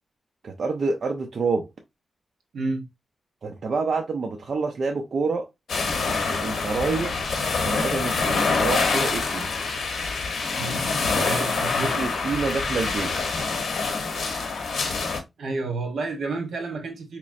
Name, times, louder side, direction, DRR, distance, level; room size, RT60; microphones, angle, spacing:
voice 1, 0.4-1.7 3.4-5.5 6.1-7.3 7.6-9.5 11.2-11.4 11.8-13.1, right 4 dB, 55° right, 0.5 m, -28 dB
voice 2, 2.5-2.8 10.6-10.8 11.2-12.0 15.4-17.2, right 3 dB, 80° right, 1.0 m, -30 dB
sound 1, 5.7-15.2, left 4 dB, 85° left, 0.9 m, -26 dB
4.1 x 2.9 x 2.5 m
wide cardioid pair, 155°, 0 cm